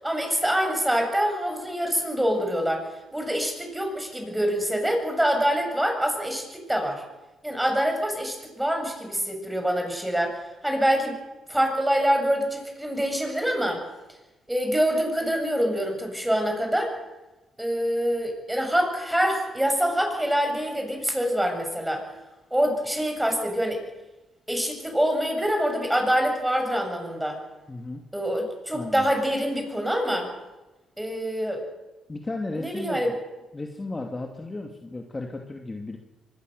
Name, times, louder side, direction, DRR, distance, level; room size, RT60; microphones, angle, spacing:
voice 1, 0.0-7.0 7.4-11.2 11.5-13.8 14.5-16.9 17.6-22.0 22.5-23.8 24.5-27.4 28.1-30.3 31.0-31.6 32.5-33.1, equal, 5° right, 3 dB, 7.4 m, -25 dB
voice 2, 27.7-28.0 28.7-29.1 32.1-33.2 33.5-36.0, left 2 dB, 20° left, 2 dB, 2.6 m, -34 dB
24.5 x 21.5 x 6.8 m, 1.1 s
cardioid pair, 90°, 0 cm